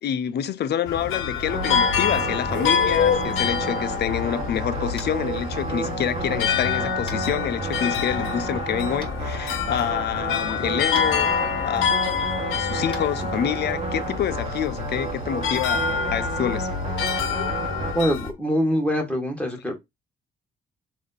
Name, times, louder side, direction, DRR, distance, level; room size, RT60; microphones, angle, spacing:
voice 1, 0.0-11.9 12.5-16.7, left 9 dB, 55° left, 0.5 m, -27 dB
sound 1, 0.9-18.3, left 7 dB, 85° left, 0.8 m, -27 dB
sound 2, 1.5-17.9, right 2 dB, 30° right, 1.3 m, -31 dB
Tap, 4.9-5.2 7.1-7.2 9.0-9.1 10.9-11.1 12.9-13.0, left 2 dB, 25° left, 1.3 m, -39 dB
voice 2, 17.9-19.8, equal, 5° left, 1.3 m, -24 dB
3.3 x 2.7 x 3.7 m
cardioid pair, 90°, 20 cm